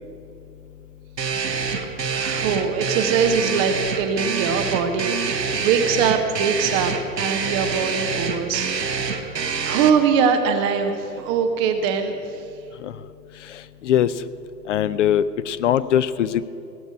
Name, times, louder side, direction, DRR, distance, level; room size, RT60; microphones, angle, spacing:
sound 1, 1.2-9.9, right 5 dB, 80° right, 1.4 m, -26 dB
voice 1, 1.8-12.4, right 6 dB, 20° right, 6 dB, 0.5 m, -23 dB
voice 2, 13.5-14.1 14.7-16.5, left 10 dB, 50° left, 15 dB, 0.5 m, -21 dB
17.0 x 7.9 x 8.6 m, 2.7 s
figure-of-eight pair, 105°, 49 cm